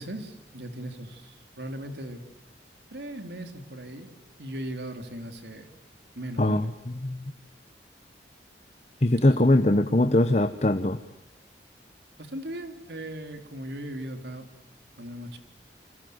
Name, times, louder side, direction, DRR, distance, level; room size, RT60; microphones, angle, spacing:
voice 1, 0.0-2.2 2.9-4.1 4.4-5.7 6.2-6.7 12.2-14.5 15.0-15.4, right 1 dB, 75° right, 6 dB, 3.7 m, -38 dB
voice 2, 9.0-11.0, left 1 dB, 35° left, 8 dB, 1.1 m, -21 dB
29.5 x 25.0 x 8.1 m, 0.84 s
head